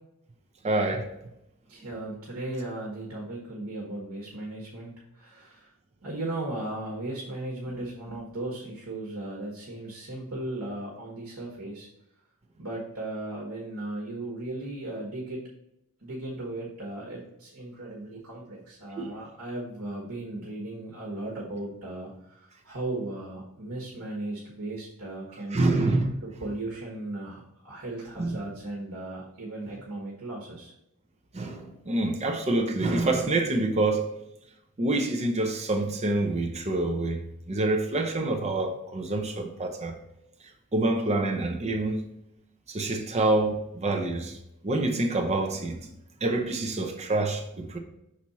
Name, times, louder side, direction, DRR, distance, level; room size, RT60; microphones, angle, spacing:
voice 1, 0.6-1.1 19.0-19.1 25.5-26.1 28.2-28.4 31.3-34.1 34.8-37.2 37.5-40.0 40.7-42.0 42.7-44.4 44.6-45.8 46.2-47.8, right 2 dB, 30° right, 0.6 m, -26 dB
voice 2, 1.7-5.7 6.0-11.9 12.6-15.4 16.0-25.9 26.2-30.7, right 2 dB, 70° right, 1.4 m, -36 dB
6.1 x 4.3 x 4.1 m
head